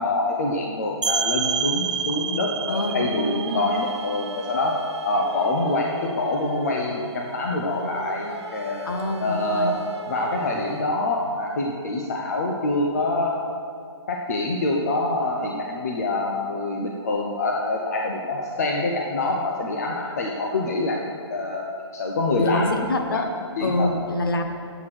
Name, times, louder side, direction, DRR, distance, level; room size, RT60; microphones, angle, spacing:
voice 1, 0.0-8.8 9.2-9.8 10.1-13.4 14.1-21.7 21.9-22.8 23.1-23.2 23.6-23.9, left 2 dB, 35° left, 0 dB, 0.9 m, -25 dB
sound 1, 1.0-6.5, right 6 dB, 85° right, 0.8 m, -30 dB
voice 2, 2.7-3.7 8.8-9.7 22.3-23.3 23.6-24.5, left 1 dB, 50° left, 5 dB, 1.2 m, -26 dB
sound 2, 2.8-10.8, right 3 dB, 65° right, 1.1 m, -40 dB
9.5 x 7.9 x 6.1 m, 2.4 s
hypercardioid pair, 170°, 15 cm